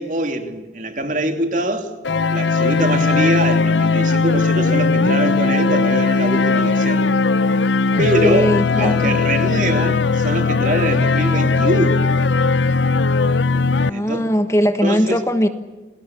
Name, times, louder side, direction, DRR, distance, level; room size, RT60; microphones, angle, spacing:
voice 1, 0.0-1.9 2.3-7.1 8.0-12.1 13.5-14.3 14.8-15.2, right 1 dB, 45° right, 2.7 m, -23 dB
sound 1, 2.0-13.9, left 4 dB, 85° left, 0.8 m, -18 dB
voice 2, 7.9-9.1 13.8-15.5, equal, 15° left, 1.3 m, -19 dB
28.5 x 19.5 x 8.4 m
head